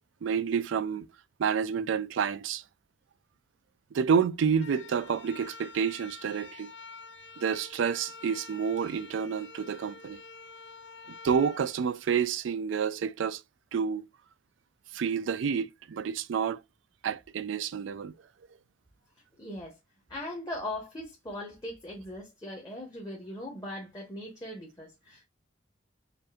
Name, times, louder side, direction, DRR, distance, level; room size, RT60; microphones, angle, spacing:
voice 1, 0.2-1.1 1.4-2.6 3.9-6.7 7.4-10.2 11.2-13.4 13.7-14.1 14.9-16.6 17.0-18.1, right 7 dB, 85° right, 0.4 m, -29 dB
sound 1, 4.5-12.7, left 3 dB, 70° left, 0.5 m, -48 dB
voice 2, 19.4-19.8 20.1-25.3, left 1 dB, 20° left, 1.0 m, -39 dB
5.1 x 2.6 x 2.4 m
head